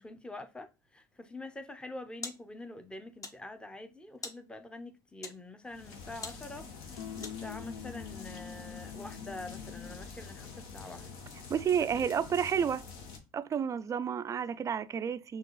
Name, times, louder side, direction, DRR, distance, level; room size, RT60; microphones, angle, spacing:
voice 1, 0.0-11.2 11.8-11.9, left 2 dB, 10° left, 0.7 m, -46 dB
sound 1, 1.6-7.7, left 3 dB, 35° left, 1.0 m, -49 dB
sound 2, 5.7-13.2, left 5 dB, 70° left, 1.1 m, -47 dB
sound 3, 7.0-10.1, left 9 dB, 90° left, 0.4 m, -44 dB
voice 2, 11.5-12.8 13.3-15.4, right 7 dB, 30° right, 0.4 m, -30 dB
5.8 x 2.4 x 3.1 m
hypercardioid pair, 80°, 11 cm